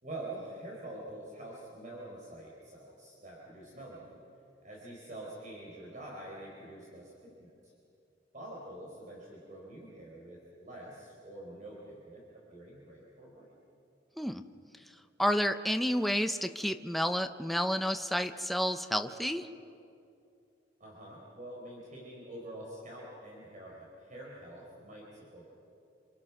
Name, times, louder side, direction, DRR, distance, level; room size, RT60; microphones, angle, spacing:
voice 1, 0.0-4.2 4.6-7.7 8.3-13.5 20.8-25.5, right 1 dB, 45° right, -3 dB, 4.3 m, -46 dB
voice 2, 15.2-19.5, equal, ahead, 7 dB, 0.6 m, -30 dB
27.5 x 27.0 x 6.0 m, 2.6 s
head